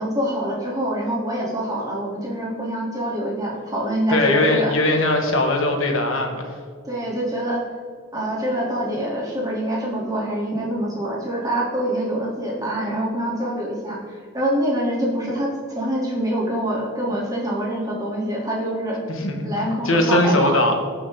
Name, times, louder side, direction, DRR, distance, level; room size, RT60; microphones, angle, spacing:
voice 1, 0.0-4.7 6.8-7.6 8.1-19.0 19.4-20.6, right 1 dB, 15° right, -5 dB, 3.1 m, -25 dB
voice 2, 4.1-6.6 19.1-20.8, left 1 dB, 70° left, 3 dB, 1.7 m, -20 dB
19.0 x 6.4 x 3.8 m, 2.1 s
head